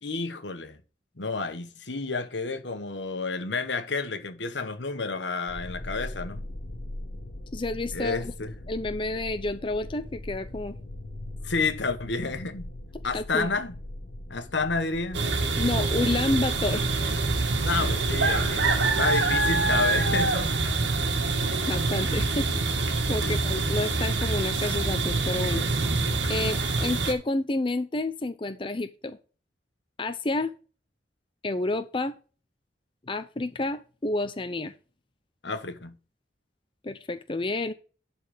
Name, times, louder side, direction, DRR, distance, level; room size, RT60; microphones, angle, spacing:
voice 1, 0.0-0.8 1.2-6.4 7.9-8.6 11.4-12.7 13.0-13.8 14.3-15.2 17.6-18.7 19.0-20.5 23.2-23.6 35.4-35.9, left 4 dB, 75° left, 1.3 m, -30 dB
sound 1, 5.5-19.2, left 1 dB, 55° left, 1.5 m, -41 dB
voice 2, 7.5-8.3 8.7-10.8 13.1-13.5 15.6-16.8 21.7-22.5 23.1-25.6 26.3-29.2 30.0-30.5 31.4-32.1 33.1-34.7 36.8-37.7, left 2 dB, 30° left, 0.6 m, -29 dB
sound 2, 15.1-27.1, right 3 dB, 85° right, 1.8 m, -25 dB
11.5 x 4.3 x 5.0 m
head